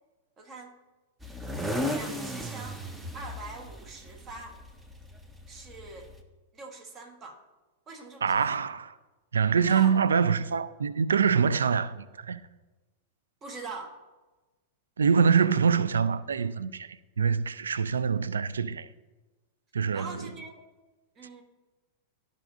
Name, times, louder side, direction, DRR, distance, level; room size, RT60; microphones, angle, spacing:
voice 1, 0.4-0.7 1.8-2.8 3.1-4.6 5.5-6.1 6.5-7.4 7.9-8.7 9.6-9.9 13.4-14.0 19.9-20.6 21.1-21.4, right 3 dB, 25° right, 1.3 m, -43 dB
sound 1, 1.2-6.2, equal, 5° right, 0.8 m, -36 dB
voice 2, 8.2-8.9 9.3-12.4 15.0-18.9 19.7-20.3, right 6 dB, 70° right, 0.3 m, -25 dB
12.5 x 5.2 x 2.6 m
figure-of-eight pair, 95°, 0 cm